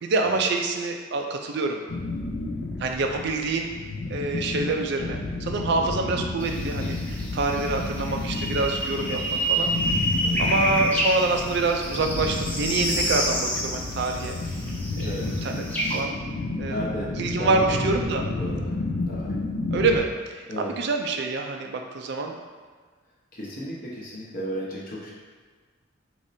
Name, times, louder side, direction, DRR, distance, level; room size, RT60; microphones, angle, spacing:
voice 1, 0.0-1.8 2.8-3.7 4.1-7.0 7.3-9.7 10.4-14.4 15.0-15.6 15.9-16.1 16.6-16.8 17.2-18.3 19.7-20.1 20.3-22.3, right 3 dB, 55° right, 3 dB, 0.4 m, -26 dB
sound 1, 1.9-20.0, left 2 dB, 65° left, 0.5 m, -31 dB
sound 2, 6.4-16.0, right 1 dB, 10° left, 0.5 m, -29 dB
voice 2, 7.5-7.8 10.2-10.4 15.0-15.3 16.7-17.1 17.4-18.8 19.1-19.3 20.5-20.7 23.3-25.1, equal, 45° left, -5 dB, 0.9 m, -34 dB
5.1 x 3.1 x 2.6 m, 1.5 s
head